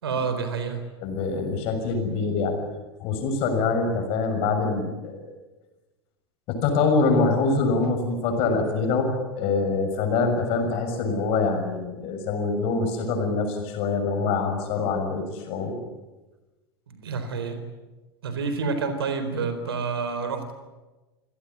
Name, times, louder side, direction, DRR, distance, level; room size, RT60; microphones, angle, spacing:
voice 1, 0.0-0.8 16.9-17.6 18.2-20.5, right 5 dB, 70° right, 9 dB, 4.0 m, -28 dB
voice 2, 1.0-2.5 3.0-5.3 6.5-15.8, left 4 dB, 45° left, 5 dB, 6.5 m, -25 dB
27.5 x 17.5 x 9.9 m, 1.1 s
figure-of-eight pair, 85°, 13 cm